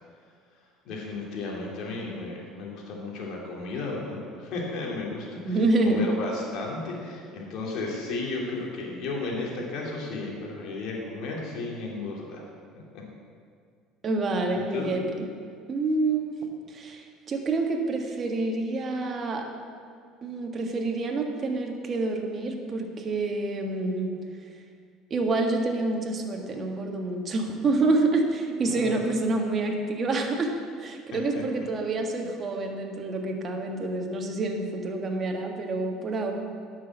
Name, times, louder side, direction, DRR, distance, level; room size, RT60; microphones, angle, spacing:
voice 1, 0.8-12.4 12.9-13.0 14.5-14.9 28.7-29.0 31.1-31.4, left 3 dB, 65° left, -2 dB, 2.8 m, -34 dB
voice 2, 5.4-6.1 14.0-15.1 15.7-16.3 16.7-19.5 20.2-24.1 25.1-30.5 30.8-36.3, right 2 dB, 35° right, 2 dB, 1.6 m, -27 dB
10.5 x 6.2 x 7.3 m, 2.1 s
supercardioid pair, 105°, 0 cm